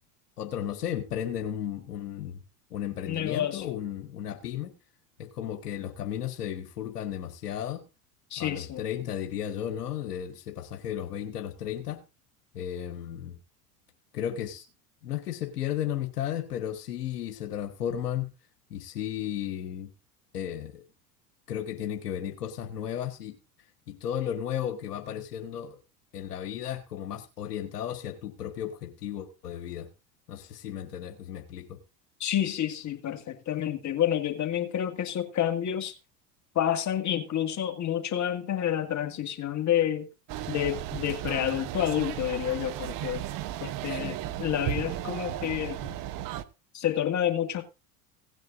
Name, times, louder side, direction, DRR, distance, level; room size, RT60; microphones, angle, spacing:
voice 1, 0.4-2.4 2.7-4.7 5.2-7.8 8.4-12.0 12.5-13.3 14.1-14.6 15.0-18.3 18.7-19.9 20.3-20.8 21.5-23.4 23.9-25.8 26.1-29.9 30.3-31.8 43.9-44.2, left 10 dB, 80° left, 1.5 m, -34 dB
voice 2, 3.1-3.7 8.3-8.8 32.2-35.9 36.6-40.1 40.5-43.2 43.6-46.0 46.7-47.6, left 10 dB, 35° left, 1.9 m, -29 dB
sound 1, 40.3-46.4, right 13 dB, 45° right, 0.9 m, -35 dB
17.0 x 9.2 x 2.6 m
hypercardioid pair, 80°, 46 cm